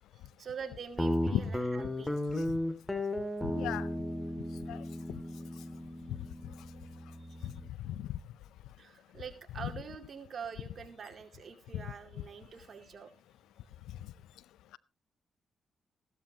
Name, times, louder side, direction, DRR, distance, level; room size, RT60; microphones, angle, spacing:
voice 1, 0.4-2.2 5.1-5.2 7.2-7.5 8.8-13.1, right 6 dB, 55° right, 6 dB, 2.3 m, -45 dB
Guitar, 1.0-7.7, left 1 dB, 15° left, 2.3 m, -35 dB
voice 2, 3.4-3.9 4.7-5.2 6.1-6.2 7.4-7.5 7.8-8.2 11.7-11.8, left 13 dB, 90° left, 20 dB, 0.5 m, -36 dB
15.5 x 12.0 x 2.9 m, 0.28 s
supercardioid pair, 60°, 0 cm